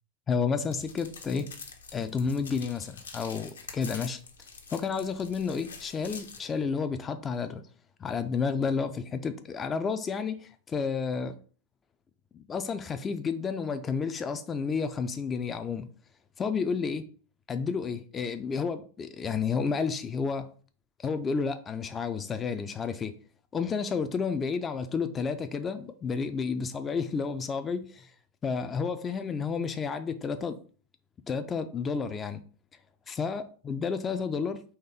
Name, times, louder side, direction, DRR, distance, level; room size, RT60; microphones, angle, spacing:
voice 1, 0.3-1.5 1.9-4.2 4.7-7.6 8.0-11.3 12.3-15.9 16.4-17.1 17.5-20.5 21.0-23.1 23.5-28.1 28.4-30.6 31.3-32.4 33.1-34.6, left 5 dB, 20° left, 0.3 m, -31 dB
sound 1, 0.7-6.4, left 5 dB, 70° left, 0.7 m, -46 dB
4.2 x 3.2 x 3.6 m
figure-of-eight pair, 90°, 0 cm